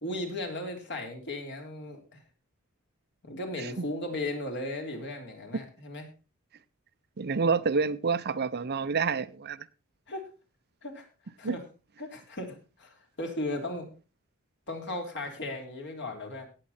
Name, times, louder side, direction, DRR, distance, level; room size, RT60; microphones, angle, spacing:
voice 1, 0.0-2.2 3.2-6.0 10.1-10.3 10.8-11.1 11.4-11.6 12.0-13.9 14.7-16.5, left 1 dB, 55° left, 3.5 m, -36 dB
voice 2, 7.2-9.6 11.4-11.6, right 5 dB, 50° right, 0.6 m, -28 dB
17.5 x 7.7 x 4.2 m
head